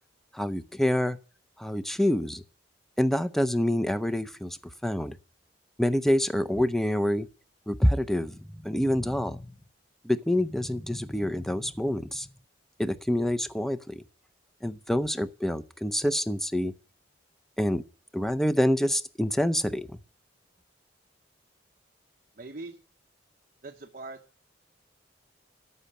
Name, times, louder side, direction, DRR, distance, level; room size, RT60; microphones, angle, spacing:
voice 1, 0.3-1.2 1.6-2.4 3.0-5.1 5.8-7.3 7.7-9.5 10.0-12.3 12.8-14.0 14.6-16.7 17.6-17.8 18.1-19.9, equal, ahead, 0.5 m, -27 dB
voice 2, 22.4-22.8 23.6-24.2, right 3 dB, 45° right, 1.0 m, -41 dB
13.5 x 5.6 x 8.8 m
head